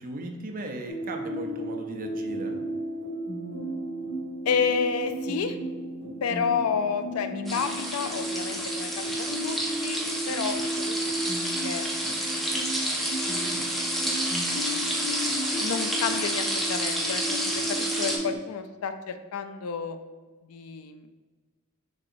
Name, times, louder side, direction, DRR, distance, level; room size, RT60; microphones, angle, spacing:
voice 1, 0.0-2.5, right 2 dB, 40° right, 3 dB, 0.5 m, -37 dB
sound 1, 0.9-18.4, right 1 dB, 40° left, 1.5 m, -34 dB
voice 2, 4.5-5.6 6.2-9.0 9.4-10.0 10.3-11.9 12.2-13.8 15.6-20.0 20.5-21.1, left 6 dB, 80° left, 9 dB, 0.4 m, -31 dB
sound 2, 7.5-18.2, equal, ahead, 0.6 m, -30 dB
6.1 x 2.9 x 2.6 m, 1.3 s
head